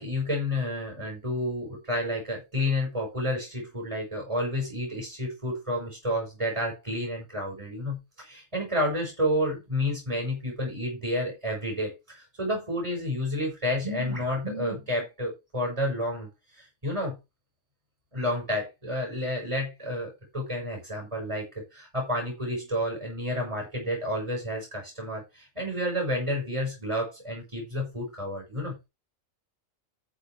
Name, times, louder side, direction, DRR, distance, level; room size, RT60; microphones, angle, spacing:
voice 1, 0.0-17.1 18.1-28.9, left 1 dB, 25° right, 5.0 m, -30 dB
11.0 x 6.6 x 4.5 m
omnidirectional pair, 1.4 m